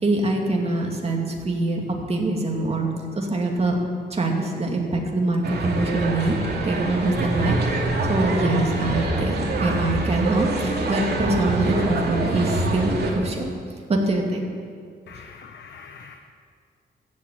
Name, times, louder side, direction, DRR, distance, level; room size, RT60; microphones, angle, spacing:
voice 1, 0.0-1.8 2.1-2.9 3.2-3.7 4.1-6.3 6.6-7.6 8.1-13.5 13.9-14.5, right 2 dB, 35° right, 1 dB, 2.5 m, -24 dB
sound 1, 5.4-13.1, right 2 dB, 65° right, 2.6 m, -25 dB
voice 2, 15.1-16.2, left 6 dB, 80° left, 4 dB, 1.0 m, -43 dB
15.0 x 7.7 x 9.1 m, 2.1 s
cardioid pair, 105°, 18 cm